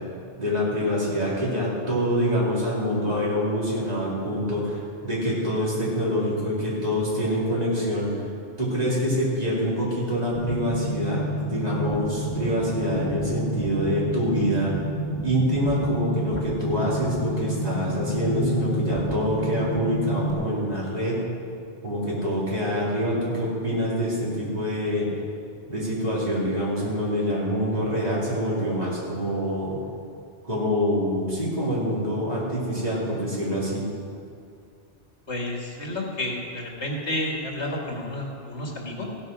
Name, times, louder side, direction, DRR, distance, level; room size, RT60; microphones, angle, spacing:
voice 1, 0.4-8.1 8.6-14.7 15.2-21.2 21.8-25.1 25.7-29.8 30.4-33.8, equal, 35° right, -7 dB, 3.8 m, -25 dB
sound 1, 10.3-20.3, equal, 25° left, 1.8 m, -30 dB
voice 2, 35.3-39.1, left 1 dB, 75° left, -1 dB, 2.3 m, -31 dB
16.0 x 8.7 x 6.2 m, 2.5 s
omnidirectional pair, 1.2 m